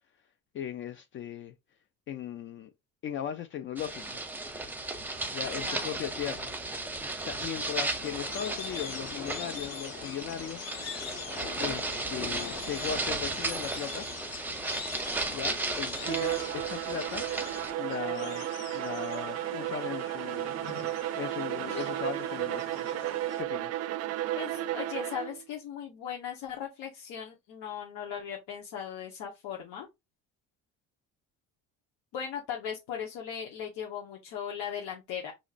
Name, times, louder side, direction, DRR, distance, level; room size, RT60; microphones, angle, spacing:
voice 1, 0.5-1.5 2.1-2.7 3.0-4.4 5.3-6.5 7.2-11.1 11.6-14.1 15.3-17.2 17.8-20.5 21.2-23.0 23.4-23.8, left 9 dB, 40° left, 0.4 m, -38 dB
sound 1, 3.8-17.7, right 2 dB, 5° right, 0.6 m, -35 dB
voice 2, 5.4-5.9 24.4-29.9 32.1-35.3, left 8 dB, 80° left, 1.2 m, -38 dB
sound 2, 8.0-23.4, left 7 dB, 55° left, 1.1 m, -44 dB
Bowed string instrument, 15.9-25.4, right 14 dB, 55° right, 0.4 m, -33 dB
6.3 x 2.9 x 2.5 m
cardioid pair, 155°, 31 cm